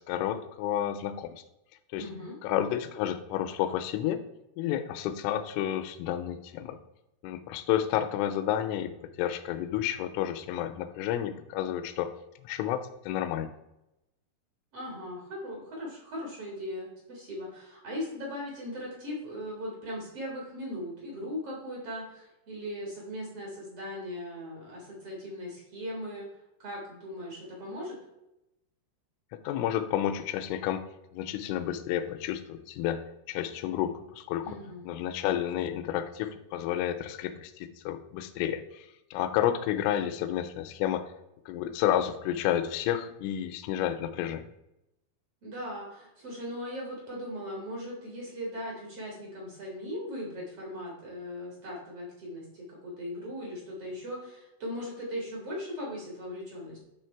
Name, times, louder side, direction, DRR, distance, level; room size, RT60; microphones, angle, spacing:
voice 1, 0.1-1.4 1.9-2.1 2.4-4.2 4.6-6.8 7.2-8.9 9.2-12.1 12.4-13.5 29.4-30.9 31.1-33.0 33.3-34.6 34.8-41.1 41.5-44.4, left 11 dB, 85° left, 10 dB, 3.0 m, -30 dB
voice 2, 1.9-2.3 14.7-26.3 26.6-28.0 34.4-34.8 45.4-56.8, equal, 80° right, -3 dB, 1.3 m, -39 dB
9.4 x 3.2 x 4.5 m, 0.89 s
omnidirectional pair, 5.7 m